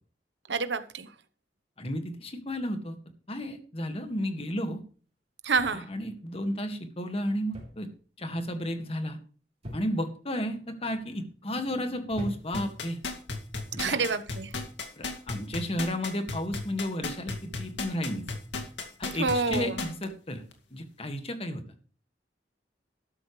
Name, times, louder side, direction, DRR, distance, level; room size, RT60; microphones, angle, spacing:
voice 1, 0.5-1.1 5.4-5.8 13.8-14.5 19.2-19.8, right 4 dB, 85° right, 1.1 m, -28 dB
voice 2, 1.8-3.0 3.3-4.8 5.7-7.9 8.2-9.2 9.7-13.0 13.7-14.0 15.0-18.3 19.0-20.4 20.7-21.6, equal, 35° left, 1.9 m, -33 dB
sound 1, 5.6-6.1 7.5-7.9 8.2-8.6 9.6-10.2 10.9-11.3 12.1-12.7 13.7-14.0, left 1 dB, 35° right, 3.8 m, -42 dB
sound 2, 12.5-20.0 20.5-20.6, left 3 dB, 90° left, 2.2 m, -34 dB
13.0 x 12.0 x 3.3 m
head